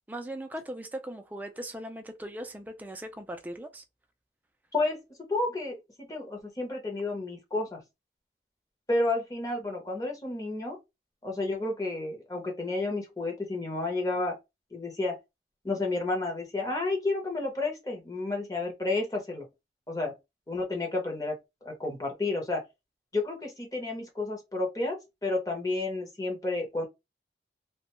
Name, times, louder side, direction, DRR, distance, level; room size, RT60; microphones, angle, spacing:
voice 1, 0.1-3.8, right 1 dB, 10° right, 0.3 m, -39 dB
voice 2, 5.3-5.8 6.1-7.8 8.9-10.8 11.2-14.4 14.7-15.1 15.6-19.5 19.9-20.1 20.5-21.3 21.6-22.6 23.1-26.9, left 2 dB, 20° left, 0.7 m, -31 dB
2.3 x 2.2 x 2.9 m
head